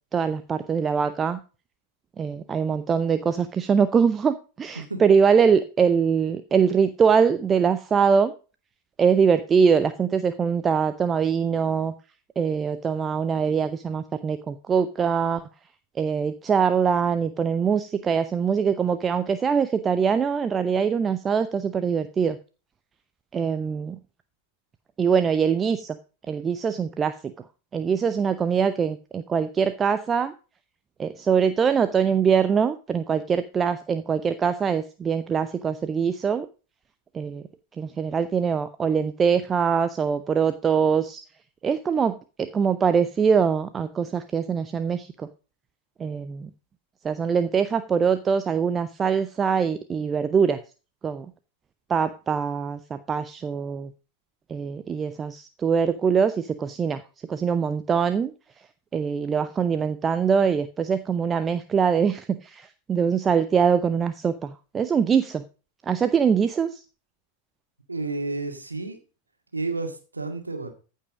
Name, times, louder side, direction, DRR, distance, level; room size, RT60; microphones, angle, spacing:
voice 1, 0.1-1.4 2.2-8.3 9.0-11.9 12.4-15.4 16.0-22.4 23.3-24.0 25.0-26.0 26.3-27.1 27.7-30.3 31.0-36.5 37.1-37.4 37.8-41.2 41.6-42.1 42.4-45.3 46.0-46.5 47.0-50.6 51.0-51.3 51.9-53.9 54.5-57.0 57.3-58.3 58.9-65.4 65.9-66.8, right 6 dB, 20° right, 12 dB, 0.7 m, -23 dB
voice 2, 67.9-69.0 69.5-70.7, right 3 dB, 80° right, 5 dB, 2.1 m, -31 dB
15.0 x 5.5 x 5.0 m, 0.34 s
figure-of-eight pair, 90°, 0 cm